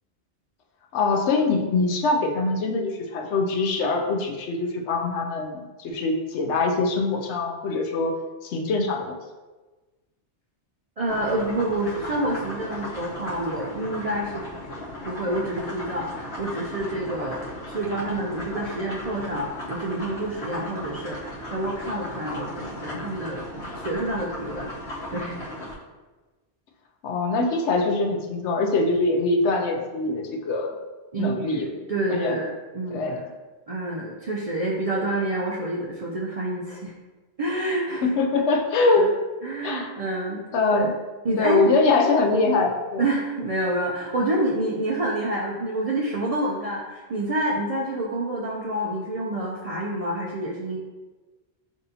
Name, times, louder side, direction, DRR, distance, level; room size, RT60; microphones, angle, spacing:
voice 1, 0.9-8.1 8.4-9.2 27.0-30.8 31.2-31.7 32.1-32.4 32.9-33.3 38.0-39.1 39.6-39.9 40.3-40.9 41.4-43.0, left 3 dB, 90° left, 3 dB, 0.9 m, -23 dB
voice 2, 11.0-14.4 15.1-23.4 23.8-25.4 31.1-33.0 33.7-36.9 37.4-38.1 38.3-38.4 39.0-39.1 39.4-40.4 40.7-40.9 41.2-41.7 43.0-50.8, right 1 dB, 55° right, -3 dB, 0.4 m, -28 dB
sound 1, 11.1-25.8, equal, 70° left, 1.3 m, -36 dB
6.1 x 2.6 x 2.7 m, 1.2 s
omnidirectional pair, 1.1 m